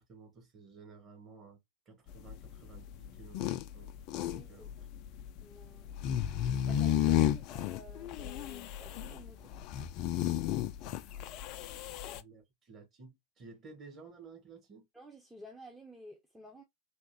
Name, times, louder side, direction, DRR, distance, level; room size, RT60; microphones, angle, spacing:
voice 1, 0.0-1.6 1.8-4.7 11.1-11.2 12.1-14.8, right 4 dB, 30° right, 1.8 m, -54 dB
sound 1, 2.1-12.2, left 11 dB, 40° left, 0.3 m, -33 dB
voice 2, 4.2-4.7 5.4-5.9 6.6-9.5 14.9-16.6, equal, 5° right, 0.8 m, -53 dB
3.6 x 3.0 x 2.9 m
figure-of-eight pair, 90°, 0 cm